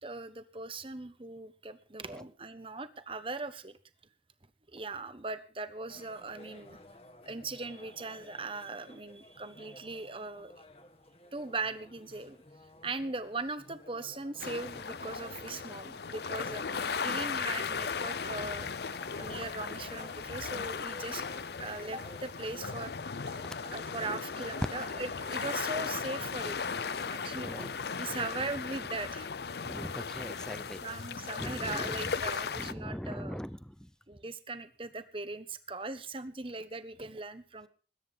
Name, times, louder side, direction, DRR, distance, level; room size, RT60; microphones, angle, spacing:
voice 1, 0.0-3.8 4.7-6.8 7.2-10.5 11.3-12.4 12.8-21.2 21.6-22.9 23.7-26.6 27.1-27.7 28.0-29.3 30.8-33.4 34.1-37.7, right 3 dB, 30° right, 11 dB, 1.2 m, -39 dB
sound 1, 5.9-25.5, left 1 dB, 35° left, 1.6 m, -54 dB
sound 2, 14.4-32.7, left 5 dB, 65° left, 0.6 m, -37 dB
sound 3, 18.0-19.1 19.3-20.3 20.6-23.6 23.9-24.9 25.3-26.9 27.2-27.6, right 5 dB, 70° right, 2.7 m, -59 dB
voice 2, 27.0-27.7 28.1-28.2 29.6-30.8 31.4-32.0 32.6-33.9, equal, 5° left, 14 dB, 0.7 m, -41 dB
21.0 x 9.9 x 5.4 m, 0.39 s
head